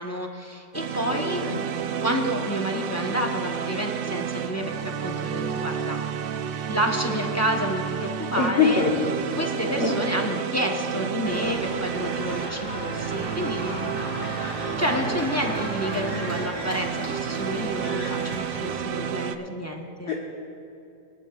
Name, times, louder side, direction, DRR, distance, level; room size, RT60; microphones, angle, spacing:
voice 1, 0.0-1.4 2.0-6.0 6.7-8.8 9.4-14.0 14.4-20.1, equal, 15° left, 1 dB, 0.7 m, -29 dB
sound 1, 0.7-19.4, right 7 dB, 70° right, 0.5 m, -31 dB
voice 2, 1.1-1.6 8.3-9.1 9.6-10.0 15.0-15.1 20.1-20.2, left 5 dB, 50° left, -3 dB, 1.3 m, -24 dB
sound 2, 11.2-18.8, equal, 40° right, 3.8 m, -35 dB
26.5 x 10.5 x 2.4 m, 2.7 s
omnidirectional pair, 1.5 m